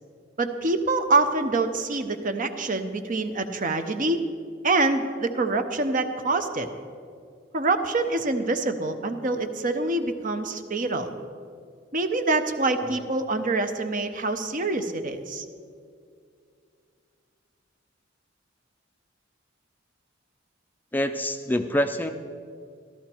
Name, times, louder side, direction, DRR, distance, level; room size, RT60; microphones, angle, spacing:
voice 1, 0.4-4.2 4.6-6.7 7.5-11.1 11.9-15.4, right 3 dB, 45° right, 8 dB, 0.8 m, -25 dB
voice 2, 20.9-22.1, left 1 dB, 10° left, 7 dB, 0.4 m, -25 dB
13.5 x 13.0 x 4.5 m, 2.2 s
head